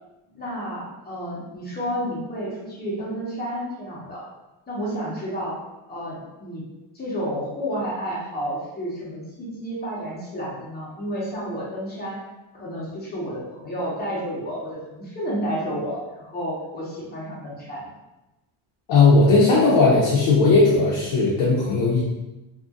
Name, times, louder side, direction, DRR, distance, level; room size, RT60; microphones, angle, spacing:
voice 1, 0.3-4.2 4.7-5.6 5.9-6.6 6.9-12.2 12.5-17.9, equal, 20° left, -6 dB, 1.0 m, -31 dB
voice 2, 18.9-22.0, left 3 dB, 65° left, -6 dB, 0.7 m, -17 dB
2.7 x 2.6 x 2.4 m, 1.0 s
cardioid pair, 120°, 49 cm